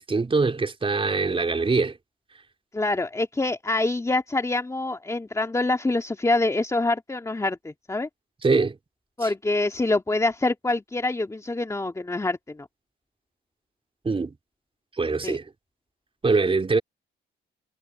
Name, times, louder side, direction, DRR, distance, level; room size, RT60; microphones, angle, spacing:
voice 1, 0.0-2.0 8.4-8.8 9.2-9.3 14.0-14.3 15.0-15.5 16.2-16.8, right 4 dB, 25° right, 4.5 m, -23 dB
voice 2, 2.7-8.1 9.2-12.7 15.2-15.4, left 2 dB, 15° left, 2.5 m, -25 dB
cardioid pair, 90°, 20 cm